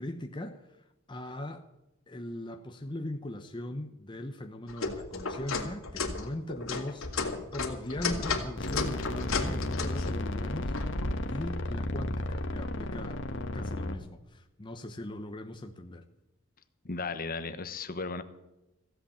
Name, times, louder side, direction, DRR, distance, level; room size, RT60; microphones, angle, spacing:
voice 1, 0.0-1.7 2.1-10.8 11.3-16.0, left 1 dB, 25° left, 5 dB, 0.9 m, -39 dB
sound 1, 4.7-11.2, left 3 dB, 85° left, 2.4 m, -33 dB
sound 2, 8.6-14.0, left 1 dB, 65° left, 1.5 m, -34 dB
voice 2, 16.8-18.2, left 4 dB, 45° left, 11 dB, 1.1 m, -35 dB
16.0 x 8.5 x 8.6 m, 0.95 s
head